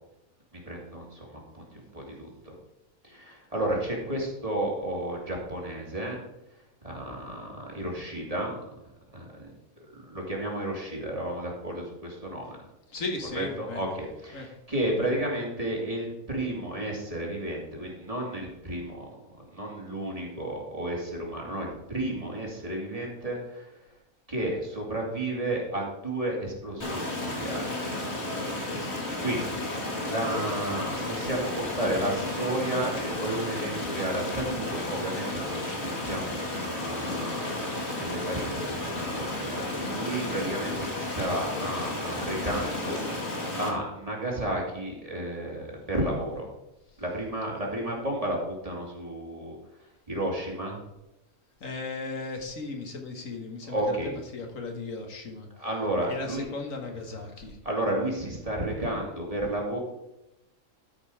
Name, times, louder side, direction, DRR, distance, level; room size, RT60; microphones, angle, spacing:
voice 1, 0.5-1.6 1.9-2.6 3.0-6.2 6.8-8.6 9.1-9.5 10.0-12.6 13.3-19.1 19.5-23.7 24.3-27.7 28.2-28.7 29.2-29.6 30.0-43.1 43.6-46.5 47.0-49.6 50.1-50.8 53.6-54.1 55.6-56.5 57.6-59.8, right 1 dB, 25° right, -2 dB, 2.4 m, -32 dB
voice 2, 12.9-13.9 14.3-14.5 14.8-15.2 51.6-55.5 56.0-57.6, left 3 dB, 65° left, 3 dB, 1.7 m, -36 dB
Stream, 26.8-43.7, left 1 dB, 45° left, 2.3 m, -33 dB
13.0 x 5.3 x 4.8 m, 0.92 s
omnidirectional pair, 1.5 m